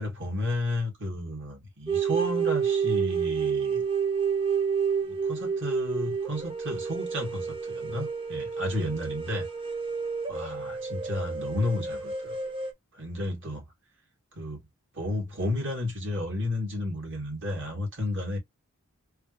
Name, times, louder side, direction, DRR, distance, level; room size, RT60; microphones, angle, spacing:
voice 1, 0.0-3.8 5.1-9.5 10.3-12.4 12.9-13.6 14.4-14.6 14.9-18.4, left 1 dB, 60° right, 1.9 m, -32 dB
sound 1, 1.9-12.7, right 6 dB, 25° right, 0.7 m, -29 dB
3.2 x 2.5 x 2.9 m
head